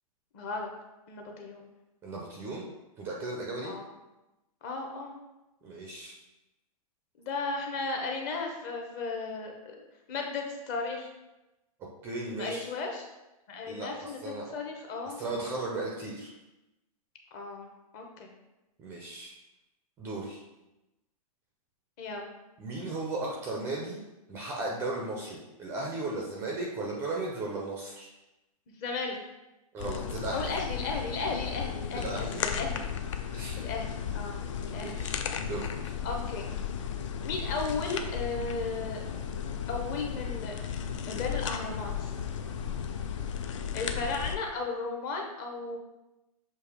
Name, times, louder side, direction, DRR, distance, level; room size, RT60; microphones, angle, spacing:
voice 1, 0.3-0.7 1.1-1.7 3.6-3.9 4.6-5.2 7.2-9.8 10.1-11.1 12.4-13.1 13.5-15.2 17.3-18.3 22.0-22.3 28.8-29.2 30.3-32.8 33.6-35.0 36.0-36.4 37.2-39.0 39.7-40.5 41.1-42.1 43.7-45.8, left 3 dB, 30° left, 2 dB, 0.8 m, -35 dB
voice 2, 2.0-2.7 3.0-3.7 5.6-6.1 12.0-12.6 13.7-13.9 14.2-14.5 15.0-16.3 18.8-19.3 20.0-20.4 22.6-24.0 24.3-28.1 29.7-30.5 32.0-32.3 33.3-33.7 34.7-35.1 35.4-35.9, right 2 dB, 10° right, -2 dB, 0.5 m, -36 dB
sound 1, 29.8-44.4, left 8 dB, 55° left, 0.5 m, -35 dB
6.9 x 2.8 x 4.8 m, 0.99 s
hypercardioid pair, 165°, 19 cm